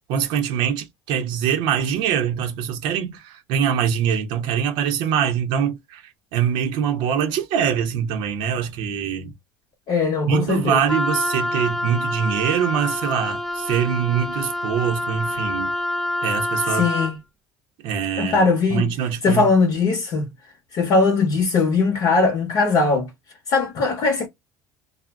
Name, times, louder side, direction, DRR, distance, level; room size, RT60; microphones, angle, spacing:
voice 1, 0.1-6.0 6.3-9.3 10.3-15.7 16.2-16.9 17.8-18.4 18.7-19.5, right 8 dB, 70° right, 0.7 m, -23 dB
voice 2, 9.9-10.8 16.7-17.2 18.2-18.9 19.2-20.3 20.7-23.1 23.5-24.3, left 4 dB, 50° left, 0.8 m, -20 dB
Wind instrument woodwind instrument, 10.9-17.2, left 1 dB, 5° left, 0.3 m, -26 dB
2.4 x 2.0 x 3.3 m
supercardioid pair, 110°, 8 cm